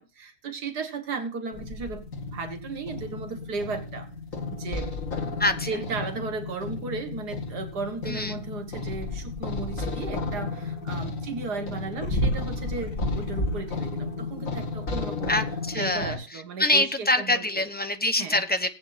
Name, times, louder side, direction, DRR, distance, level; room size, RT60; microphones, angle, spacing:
voice 1, 0.0-4.1 4.5-4.9 5.7-15.3 15.7-17.6 18.2-18.4, right 4 dB, 85° right, 6 dB, 2.1 m, -35 dB
sound 1, 1.5-16.2, left 2 dB, 55° left, 2.3 m, -32 dB
voice 2, 8.1-8.4 15.3-18.7, left 1 dB, 10° left, 6 dB, 0.5 m, -25 dB
19.0 x 8.7 x 2.6 m, 0.32 s
omnidirectional pair, 1.7 m